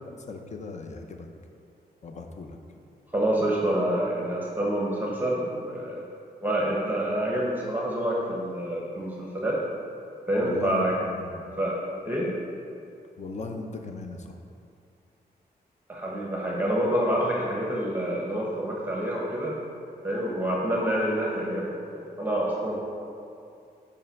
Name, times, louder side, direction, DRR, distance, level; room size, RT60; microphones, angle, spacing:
voice 1, 0.1-1.3 2.0-2.6 10.4-11.5 13.2-14.4 22.7-22.8, left 3 dB, 45° left, 4 dB, 0.7 m, -38 dB
voice 2, 3.1-6.0 6.4-9.7 10.3-10.9 11.6-11.8 12.0-12.3 15.9-19.5 20.0-22.8, right 1 dB, 10° right, -4 dB, 1.0 m, -27 dB
5.5 x 5.2 x 5.7 m, 2.5 s
wide cardioid pair, 125°, 17 cm